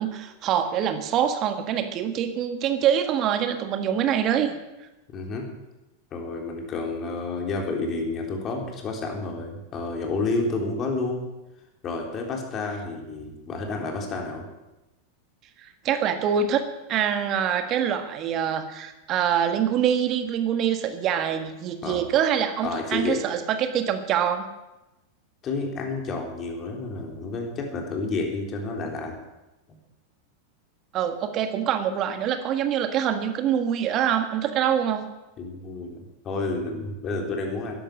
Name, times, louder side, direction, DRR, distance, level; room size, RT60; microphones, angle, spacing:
voice 1, 0.0-4.6 15.6-16.6 16.9-24.4 30.9-35.0, right 9 dB, 40° right, 8 dB, 1.5 m, -25 dB
voice 2, 5.1-5.5 6.1-11.2 11.8-14.5 21.8-22.0 22.6-23.2 25.4-29.2 35.4-37.8, left 3 dB, 35° left, 2 dB, 3.8 m, -30 dB
12.5 x 11.0 x 7.7 m, 1.0 s
figure-of-eight pair, 90°, 0 cm